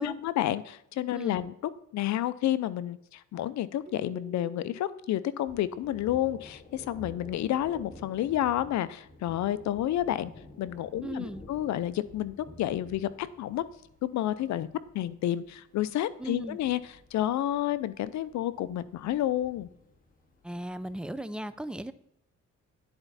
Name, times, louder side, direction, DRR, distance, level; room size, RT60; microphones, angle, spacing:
voice 1, 0.0-10.3 10.6-13.6 14.0-14.7 14.9-16.8 17.1-19.7, left 12 dB, 65° left, 16 dB, 0.5 m, -30 dB
Keyboard (musical), 3.9-6.7, right 2 dB, 25° right, 1.8 m, -50 dB
Thunder, 5.5-21.0, left 1 dB, 30° left, 1.9 m, -51 dB
voice 2, 11.0-11.4 16.2-16.6 20.4-21.9, right 1 dB, 5° right, 14 dB, 0.4 m, -37 dB
10.5 x 4.4 x 4.0 m, 0.76 s
cardioid pair, 90°, 30 cm